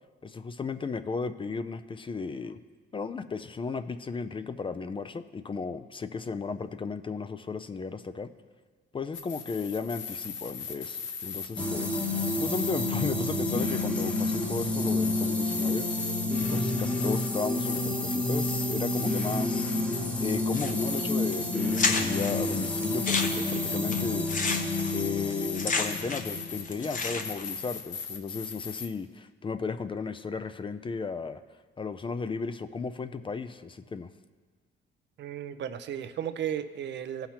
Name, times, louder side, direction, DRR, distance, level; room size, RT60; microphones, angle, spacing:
voice 1, 0.2-2.6 2.9-8.3 8.9-16.1 16.4-24.6 24.9-31.4 31.8-34.1, left 4 dB, 25° left, 10 dB, 0.4 m, -35 dB
sound 1, 9.1-28.9, left 6 dB, 70° left, 0.8 m, -39 dB
sound 2, 11.6-27.3, left 2 dB, 5° left, 0.9 m, -30 dB
sound 3, 20.5-21.0 21.3-21.4 21.7-22.3 22.8-26.4 26.6-27.5, left 4 dB, 40° left, 0.9 m, -30 dB
voice 2, 35.2-37.3, right 9 dB, 65° right, 10 dB, 0.5 m, -34 dB
16.5 x 5.8 x 2.9 m, 1.4 s
cardioid pair, 90°, 20 cm